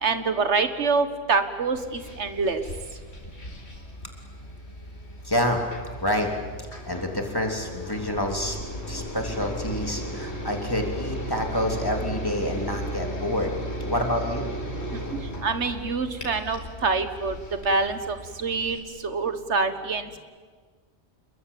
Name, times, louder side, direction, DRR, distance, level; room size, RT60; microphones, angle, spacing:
voice 1, 0.0-2.6 14.9-17.4 17.6-18.8 19.0-20.2, right 4 dB, 90° right, 9 dB, 1.9 m, -26 dB
sound 1, 1.7-18.8, equal, 70° left, 4.6 m, -36 dB
voice 2, 5.2-5.6 6.0-6.3 6.6-8.6 8.9-13.5 13.8-14.5, left 1 dB, 20° left, 2 dB, 3.4 m, -28 dB
28.5 x 22.0 x 8.6 m, 1.5 s
omnidirectional pair, 1.1 m